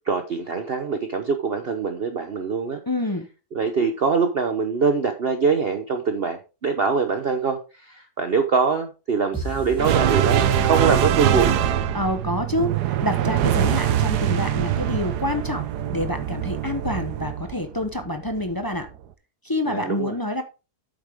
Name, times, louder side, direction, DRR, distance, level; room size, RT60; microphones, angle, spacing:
voice 1, 0.1-2.8 3.5-11.5 19.7-20.2, right 5 dB, 45° right, 7 dB, 0.9 m, -23 dB
voice 2, 2.9-3.3 11.9-18.9 19.4-20.4, left 1 dB, 25° left, 7 dB, 0.5 m, -27 dB
sound 1, 9.3-11.2, right 4 dB, 5° right, 2.6 m, -35 dB
sound 2, 9.8-18.4, right 10 dB, 85° right, 1.3 m, -23 dB
8.7 x 7.3 x 3.5 m, 0.31 s
omnidirectional pair, 1.7 m